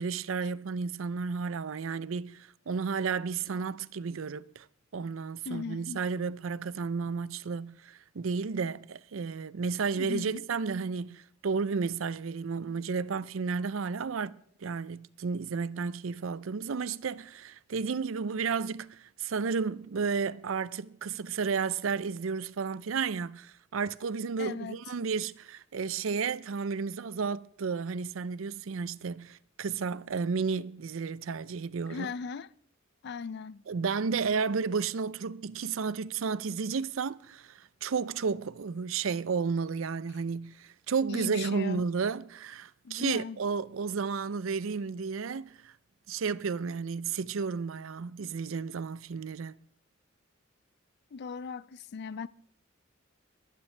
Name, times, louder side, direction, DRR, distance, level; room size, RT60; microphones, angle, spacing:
voice 1, 0.0-4.7 4.9-32.1 33.7-45.7 46.1-49.6, right 5 dB, 85° right, 0.5 m, -32 dB
voice 2, 5.5-6.0 10.0-10.4 24.4-24.8 31.9-32.5 33.0-33.6 41.1-41.8 42.8-43.4 51.1-52.3, left 5 dB, 55° left, 0.4 m, -38 dB
22.5 x 9.9 x 3.3 m
head